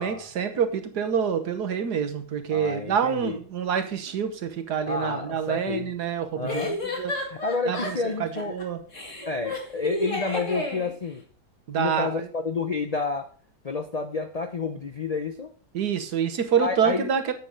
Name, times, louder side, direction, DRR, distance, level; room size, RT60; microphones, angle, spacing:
voice 1, 0.0-7.2 7.7-8.8 11.7-12.3 15.7-17.3, right 7 dB, 75° right, 8 dB, 1.7 m, -27 dB
voice 2, 2.5-3.4 4.9-5.9 6.3-6.8 7.3-8.6 9.3-11.2 11.8-13.3 13.6-15.5 16.6-17.1, left 4 dB, 85° left, 7 dB, 0.3 m, -29 dB
sound 1, 4.1-4.2 6.5-8.6 8.9-10.9, left 1 dB, 50° left, 2.4 m, -32 dB
9.4 x 6.5 x 5.2 m, 0.44 s
omnidirectional pair, 1.8 m